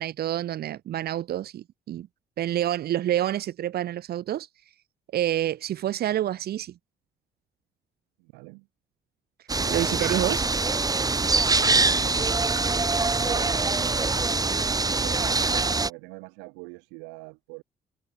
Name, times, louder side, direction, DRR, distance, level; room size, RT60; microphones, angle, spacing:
voice 1, 0.0-2.1 2.4-4.5 5.1-6.7 9.7-10.4, right 12 dB, 60° right, 2.0 m, -28 dB
voice 2, 8.2-8.7 9.6-10.3 10.9-12.7 13.2-14.2 14.9-17.6, right 37 dB, 75° right, 6.6 m, -44 dB
sound 1, 9.5-15.9, right 3 dB, 20° right, 1.3 m, -24 dB
figure-of-eight pair, 45°, 18 cm